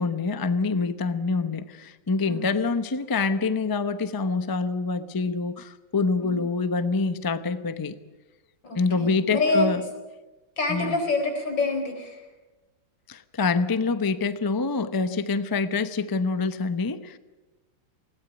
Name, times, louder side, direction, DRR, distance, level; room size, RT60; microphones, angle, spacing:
voice 1, 0.0-8.0 8.7-9.8 10.7-11.0 13.1-17.2, left 4 dB, 30° left, 12 dB, 0.4 m, -26 dB
voice 2, 8.6-9.7 10.6-12.2, left 3 dB, 85° left, 4 dB, 4.8 m, -26 dB
20.5 x 17.0 x 10.0 m, 1.1 s
omnidirectional pair, 2.0 m